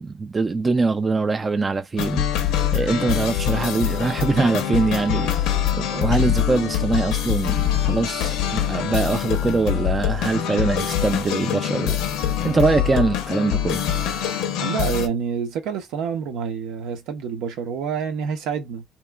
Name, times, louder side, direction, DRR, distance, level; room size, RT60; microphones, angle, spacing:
voice 1, 0.0-2.2 2.7-5.5 5.8-12.0 12.4-13.8, right 3 dB, 25° right, 0.3 m, -23 dB
sound 1, 2.0-15.1, left 10 dB, 85° left, 0.5 m, -24 dB
voice 2, 14.6-18.8, right 7 dB, 80° right, 0.7 m, -27 dB
2.9 x 2.2 x 2.2 m
cardioid pair, 110°, 0 cm